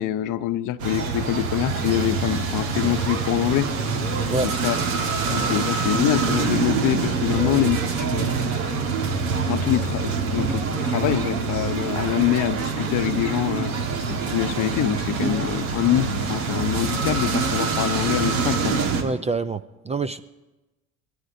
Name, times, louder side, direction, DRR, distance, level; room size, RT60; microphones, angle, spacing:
voice 1, 0.0-3.7 4.4-4.8 5.3-8.2 9.5-13.7 14.1-18.8, left 13 dB, 50° left, 0.7 m, -25 dB
sound 1, 0.8-19.0, right 4 dB, 80° right, 1.6 m, -25 dB
voice 2, 7.3-7.7 19.0-20.2, right 3 dB, 15° right, 0.4 m, -27 dB
21.5 x 14.0 x 2.7 m
hypercardioid pair, 70°, 40 cm